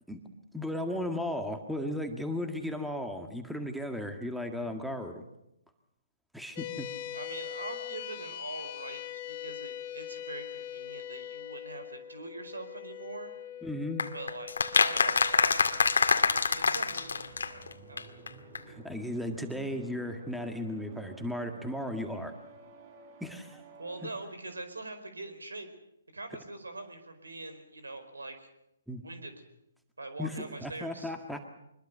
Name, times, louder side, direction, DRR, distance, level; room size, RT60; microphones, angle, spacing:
voice 1, 0.5-5.2 6.3-6.9 13.6-14.1 18.7-22.3 23.2-23.6 28.9-29.0 30.2-31.5, left 1 dB, ahead, 5 dB, 1.9 m, -35 dB
sound 1, 6.6-19.2, left 11 dB, 40° left, 1.8 m, -43 dB
voice 2, 7.1-13.3 14.1-15.6 16.3-18.1 23.8-25.7 26.1-28.5 29.0-29.3 30.0-31.1, right 2 dB, 85° right, 9 dB, 4.7 m, -43 dB
sound 2, 14.0-17.7 18.0-18.1 18.3-18.4 18.5-18.6, left 5 dB, 75° left, 2.0 m, -25 dB
sound 3, 16.5-24.2, right 3 dB, 40° right, 6.6 m, -52 dB
24.0 x 21.5 x 6.8 m, 0.83 s
figure-of-eight pair, 135°, 0 cm